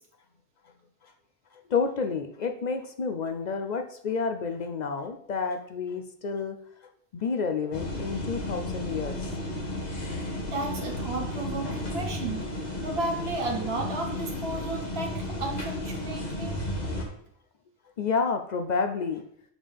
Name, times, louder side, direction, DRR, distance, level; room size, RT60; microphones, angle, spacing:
voice 1, 1.5-6.6 7.1-9.3 18.0-19.2, left 5 dB, 55° left, 7 dB, 0.5 m, -30 dB
sound 1, 7.7-17.0, left 1 dB, 40° left, 1.3 m, -33 dB
voice 2, 10.5-16.6, right 3 dB, 60° right, 1 dB, 1.5 m, -33 dB
7.3 x 5.4 x 3.4 m, 0.67 s
omnidirectional pair, 1.2 m